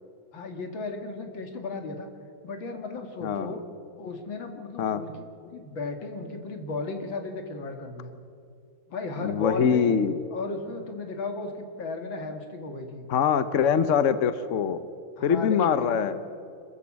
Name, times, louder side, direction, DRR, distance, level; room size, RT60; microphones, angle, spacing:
voice 1, 0.3-2.1 2.4-3.6 4.0-5.1 5.4-8.1 8.9-9.9 10.3-11.5 11.8-13.1 15.2-16.2, left 3 dB, 80° left, 5 dB, 2.8 m, -35 dB
voice 2, 3.2-3.6 4.8-5.0 9.2-10.1 13.1-14.9 15.2-16.2, left 7 dB, 50° left, 12 dB, 1.0 m, -23 dB
26.0 x 14.0 x 7.5 m, 2.5 s
omnidirectional pair, 2.1 m